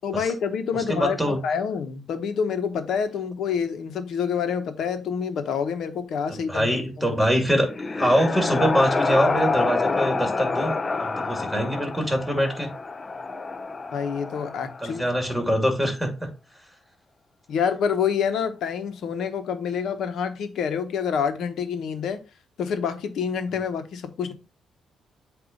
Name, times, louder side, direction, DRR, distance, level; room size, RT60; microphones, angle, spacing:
voice 1, 0.0-6.7 7.0-7.2 13.9-15.0 17.5-22.2 22.6-24.3, left 7 dB, 70° left, 1.1 m, -27 dB
voice 2, 0.7-1.4 6.5-7.7 8.0-10.7 11.0-12.7 14.8-16.3, equal, ahead, 2.4 m, -23 dB
sound 1, 7.5-15.2, left 3 dB, 30° left, 0.5 m, -27 dB
7.9 x 2.7 x 5.2 m
cardioid pair, 90°, 0 cm